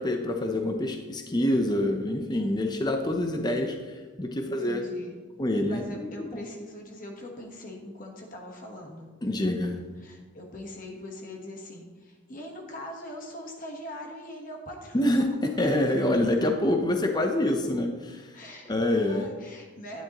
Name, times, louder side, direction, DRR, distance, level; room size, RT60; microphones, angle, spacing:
voice 1, 0.0-4.8 5.4-6.4 9.2-9.8 14.9-18.3 18.7-19.3, left 1 dB, 20° left, 4 dB, 0.7 m, -26 dB
voice 2, 4.4-5.1 5.7-9.1 10.0-15.0 18.3-20.0, left 1 dB, 40° left, 1 dB, 1.3 m, -41 dB
10.5 x 10.0 x 3.0 m, 1.3 s
head